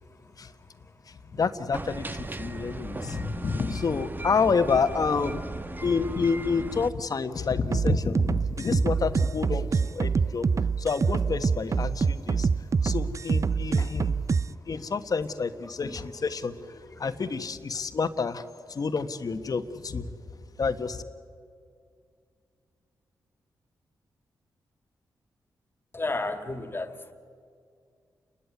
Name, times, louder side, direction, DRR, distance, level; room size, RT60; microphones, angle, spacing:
voice 1, 1.1-5.4 5.8-10.5 10.8-12.5 12.8-14.3 14.7-18.4 18.7-20.1 20.6-21.0, left 5 dB, 55° left, 9 dB, 1.3 m, -29 dB
sound 1, 1.7-6.9, right 2 dB, 25° right, 1.1 m, -37 dB
sound 2, 7.7-14.5, right 5 dB, 45° right, 0.5 m, -25 dB
voice 2, 25.9-27.1, left 2 dB, 30° left, 8 dB, 2.2 m, -32 dB
29.5 x 11.5 x 9.8 m, 2.2 s
cardioid pair, 60°, 8 cm